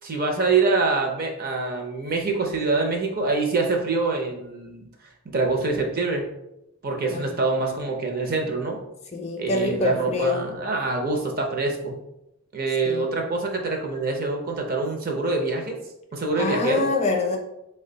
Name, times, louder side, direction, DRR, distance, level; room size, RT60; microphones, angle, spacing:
voice 1, 0.0-4.9 5.3-6.3 6.8-8.8 9.4-12.0 12.5-15.8 16.1-16.9, right 3 dB, 40° right, 2 dB, 0.6 m, -25 dB
voice 2, 7.1-7.4 9.1-10.5 12.8-13.3 16.3-17.4, left 3 dB, 30° left, 1 dB, 0.4 m, -26 dB
3.9 x 2.2 x 3.8 m, 0.86 s
head